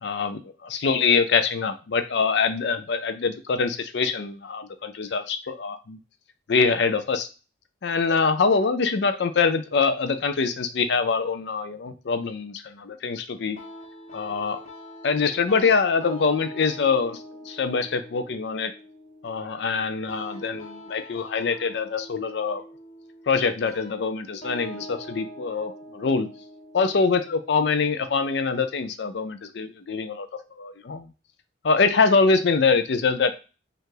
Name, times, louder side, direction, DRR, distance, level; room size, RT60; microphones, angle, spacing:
voice 1, 0.0-6.0 6.5-7.3 7.8-13.6 14.1-14.6 15.0-18.7 19.2-22.6 23.3-26.3 26.7-30.3 30.6-31.1 31.6-33.3, left 4 dB, 65° left, 9 dB, 0.4 m, -24 dB
sound 1, 13.6-28.5, equal, 35° left, 1.0 m, -43 dB
5.3 x 2.5 x 3.8 m, 0.32 s
head